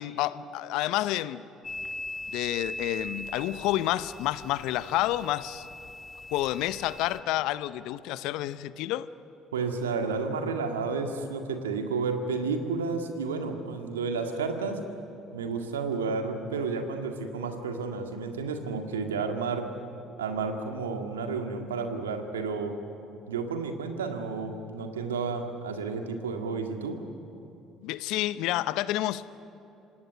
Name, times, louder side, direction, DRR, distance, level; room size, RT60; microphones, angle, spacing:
voice 1, 0.0-1.4 2.3-5.7 6.3-9.1 27.8-29.2, left 14 dB, 70° left, 16 dB, 0.8 m, -29 dB
sound 1, 1.6-7.2, left 1 dB, 20° left, 1.8 m, -40 dB
voice 2, 9.5-14.8 15.3-19.7 20.2-22.8 23.3-27.0, right 4 dB, 85° right, 5 dB, 2.0 m, -31 dB
26.5 x 18.5 x 9.7 m, 2.9 s
hypercardioid pair, 55°, 0 cm